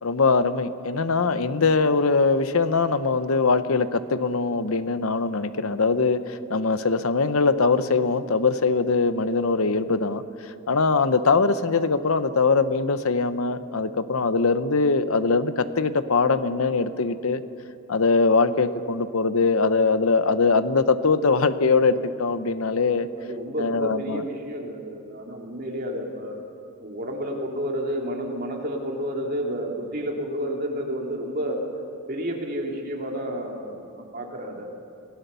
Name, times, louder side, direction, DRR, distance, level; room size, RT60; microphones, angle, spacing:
voice 1, 0.0-17.4 17.9-23.1 23.6-24.2, left 4 dB, 75° left, 12 dB, 0.8 m, -22 dB
voice 2, 23.2-26.4 26.8-31.6 32.1-34.7, equal, 45° right, 0 dB, 2.7 m, -30 dB
27.0 x 17.5 x 6.9 m, 2.6 s
head